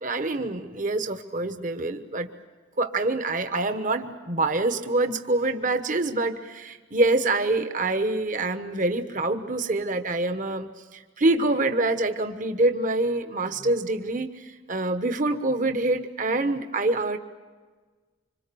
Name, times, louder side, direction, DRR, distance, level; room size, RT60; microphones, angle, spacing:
voice 1, 0.0-2.3 2.8-17.2, right 2 dB, 40° right, 8 dB, 1.2 m, -26 dB
26.0 x 25.5 x 6.9 m, 1.4 s
head